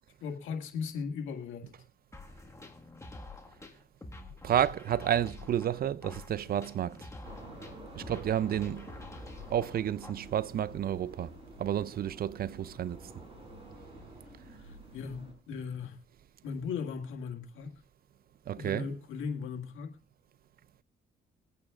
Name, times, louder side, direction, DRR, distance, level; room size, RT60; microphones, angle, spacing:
voice 1, 0.2-1.8 14.9-16.0 16.4-17.7 18.6-20.0, left 6 dB, 85° left, 1.9 m, -37 dB
sound 1, 2.1-10.1, left 2 dB, 15° left, 1.6 m, -48 dB
voice 2, 4.4-7.1 8.0-8.9 9.5-11.3 11.6-13.1 18.5-18.9, right 10 dB, 50° right, 0.4 m, -31 dB
sound 2, 7.2-15.3, right 1 dB, 30° right, 5.7 m, -49 dB
22.0 x 8.8 x 2.4 m
cardioid pair, 90°, 20 cm